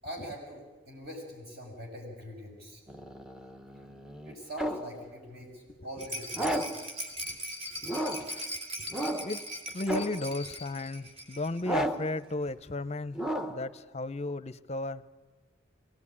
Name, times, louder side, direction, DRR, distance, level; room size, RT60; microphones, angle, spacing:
voice 1, 0.0-2.8 3.8-3.9 4.3-6.8, equal, 50° right, 0 dB, 7.1 m, -43 dB
sound 1, 2.9-5.0 6.3-6.9 7.9-8.4 8.9-9.4 9.9-10.3 11.6-12.2 13.1-13.7, right 1 dB, 5° right, 0.7 m, -34 dB
Rattle, 6.0-11.7 11.9-12.0 12.3-12.4, equal, 30° right, 2.6 m, -40 dB
voice 2, 7.8-8.5 8.8-8.9 9.2-9.4 9.7-15.0, left 2 dB, 35° left, 15 dB, 0.6 m, -35 dB
23.0 x 18.5 x 9.8 m, 1.3 s
head